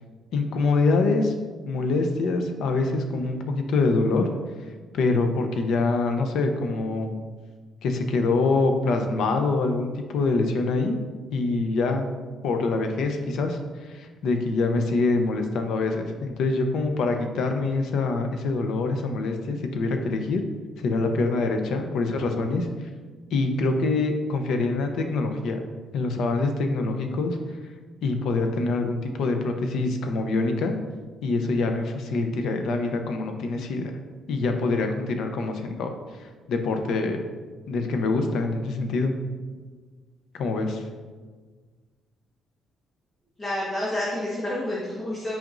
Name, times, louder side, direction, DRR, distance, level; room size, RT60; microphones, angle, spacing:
voice 1, 0.3-1.3 1.6-4.3 4.9-7.2 7.8-11.0 11.3-12.1 12.4-20.4 20.8-22.7 23.3-25.6 25.9-27.4 28.0-30.8 31.2-33.9 34.3-35.9 36.2-37.2 37.7-39.2 40.3-40.8, left 3 dB, 70° left, 5 dB, 0.7 m, -25 dB
voice 2, 43.4-45.3, left 1 dB, 25° left, -7 dB, 1.3 m, -29 dB
9.0 x 5.0 x 2.6 m, 1.5 s
cardioid pair, 160°, 0 cm